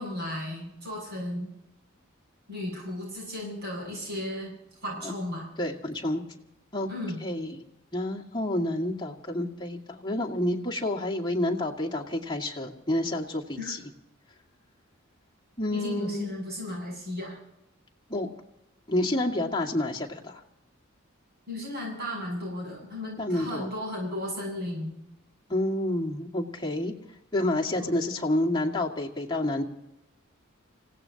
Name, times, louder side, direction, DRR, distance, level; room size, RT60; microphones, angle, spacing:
voice 1, 0.0-1.5 2.5-4.5 4.8-5.5 6.9-7.2 13.6-13.7 15.7-17.4 21.5-25.0 27.7-28.0, left 1 dB, 50° right, -2 dB, 7.5 m, -35 dB
voice 2, 5.6-6.2 6.7-6.9 7.2-7.6 7.9-13.8 15.6-16.3 18.1-18.3 18.9-20.4 23.2-23.7 25.5-26.9 27.3-29.6, left 1 dB, 20° left, -2 dB, 2.0 m, -29 dB
28.5 x 17.0 x 2.9 m, 0.86 s
head